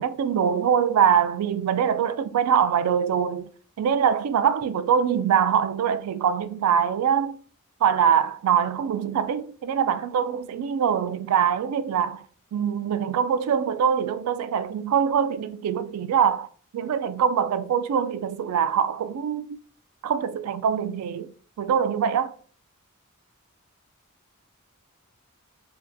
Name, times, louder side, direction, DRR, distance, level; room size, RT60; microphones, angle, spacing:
voice 1, 0.0-3.5 3.8-7.4 7.8-12.2 12.5-16.5 16.7-19.6 20.0-21.3 21.6-22.3, right 8 dB, 85° right, 0.3 m, -23 dB
3.4 x 2.6 x 2.2 m
head